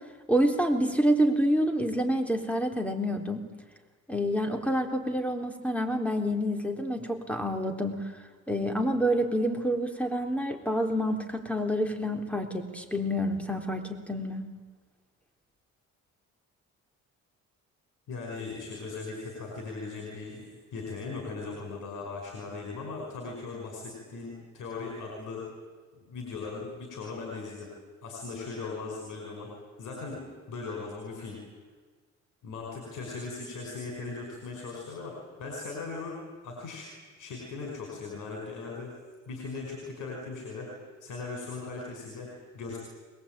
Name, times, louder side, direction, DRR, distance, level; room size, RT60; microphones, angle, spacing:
voice 1, 0.3-3.4 4.1-8.0 8.5-14.4, equal, 5° left, 5 dB, 3.7 m, -28 dB
voice 2, 18.1-25.5 25.9-27.7 28.0-29.5 29.8-31.4 32.4-36.9 37.2-39.0 39.3-42.8, left 4 dB, 85° left, 0 dB, 5.5 m, -39 dB
22.5 x 21.5 x 9.0 m, 1.4 s
cardioid pair, 90°, 30 cm